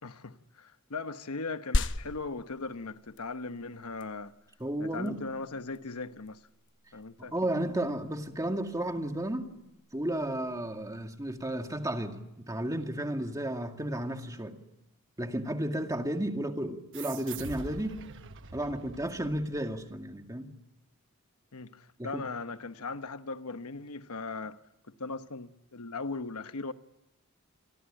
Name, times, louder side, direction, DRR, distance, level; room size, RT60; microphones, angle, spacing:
voice 1, 0.0-4.3 4.8-6.4 6.9-7.3 21.5-24.6 24.9-26.7, left 3 dB, 80° left, 1.1 m, -38 dB
sound 1, 1.7-11.7, left 2 dB, 55° left, 0.9 m, -38 dB
voice 2, 4.6-5.2 7.2-9.5 9.9-14.6 15.2-18.0 18.5-20.5 22.0-22.2, right 1 dB, 15° right, 2.2 m, -33 dB
sound 2, 16.9-20.0, right 4 dB, 55° right, 1.1 m, -44 dB
29.0 x 23.0 x 8.9 m
head